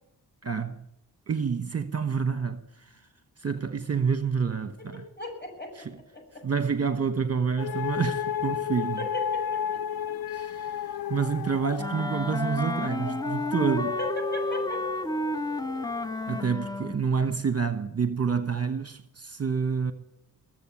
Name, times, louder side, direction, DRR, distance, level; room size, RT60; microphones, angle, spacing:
voice 1, 0.4-0.8 1.3-2.9 3.4-5.0 5.8-5.9 6.4-9.0 10.3-10.8 11.1-14.0 16.3-19.9, right 6 dB, 40° right, 1.1 m, -28 dB
voice 2, 4.8-5.9 6.1-6.4 9.0-10.1 14.0-14.8, left 1 dB, 25° left, 7.6 m, -37 dB
sound 1, 7.6-16.5, left 8 dB, 70° left, 0.7 m, -33 dB
Wind instrument woodwind instrument, 11.8-17.0, left 1 dB, 10° left, 0.6 m, -31 dB
21.5 x 7.7 x 8.6 m
cardioid pair, 50°, 37 cm